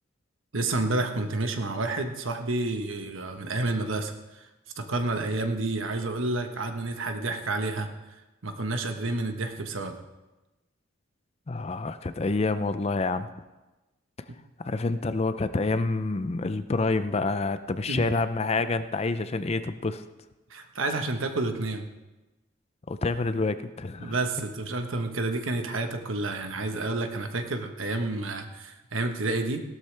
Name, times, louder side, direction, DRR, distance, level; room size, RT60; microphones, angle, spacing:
voice 1, 0.5-4.5 4.8-7.9 8.4-10.0 17.9-18.1 20.5-21.9 24.0-29.6, right 2 dB, 70° right, 6 dB, 1.2 m, -30 dB
voice 2, 11.5-13.3 14.6-20.0 22.9-24.1, left 3 dB, 30° left, 12 dB, 0.5 m, -28 dB
17.0 x 12.5 x 3.3 m, 1.1 s
head